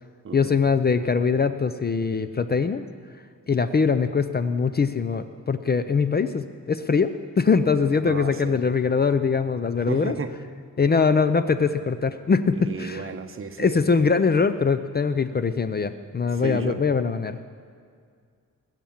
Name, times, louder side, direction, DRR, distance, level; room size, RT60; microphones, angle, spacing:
voice 1, 0.3-2.8 3.5-10.2 10.8-13.1 13.6-17.4, left 5 dB, 30° left, 11 dB, 0.5 m, -22 dB
voice 2, 8.0-8.6 9.9-10.3 12.7-13.7 16.4-16.8, right 5 dB, 40° right, 7 dB, 1.0 m, -32 dB
21.0 x 7.5 x 7.2 m, 2.1 s
wide cardioid pair, 135°, 33 cm